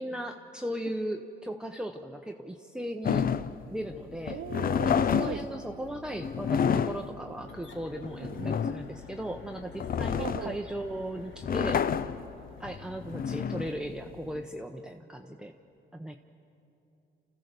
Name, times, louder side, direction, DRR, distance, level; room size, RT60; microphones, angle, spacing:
voice 1, 0.0-3.3 3.7-4.4 4.8-11.9 12.6-15.5 15.9-16.2, right 1 dB, 5° right, 3 dB, 0.8 m, -37 dB
sound 1, 3.0-14.4, left 7 dB, 45° left, 0.6 m, -30 dB
voice 2, 4.3-5.4 8.2-8.6 10.2-10.6, right 12 dB, 75° right, 6 dB, 0.6 m, -39 dB
sound 2, 7.4-13.8, left 3 dB, 70° left, 2.1 m, -54 dB
28.0 x 15.0 x 6.8 m, 2.9 s
cardioid pair, 90°, 20 cm